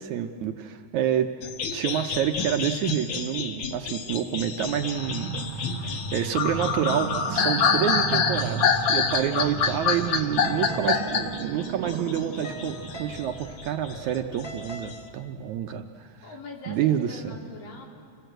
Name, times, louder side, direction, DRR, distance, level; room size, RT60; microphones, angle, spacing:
voice 1, 0.0-1.3 1.7-16.3 16.7-17.4, right 9 dB, 70° right, 6 dB, 1.9 m, -28 dB
sound 1, 1.4-13.2 13.6-14.9, left 6 dB, 60° left, 1.3 m, -27 dB
sound 2, 4.6-15.1, right 5 dB, 90° right, 1.1 m, -35 dB
voice 2, 9.2-9.6 16.2-17.9, left 3 dB, 75° left, 0 dB, 4.8 m, -41 dB
sound 3, 9.2-14.9, right 1 dB, 25° left, 2.7 m, -43 dB
28.0 x 20.0 x 7.9 m, 2.1 s
omnidirectional pair, 4.0 m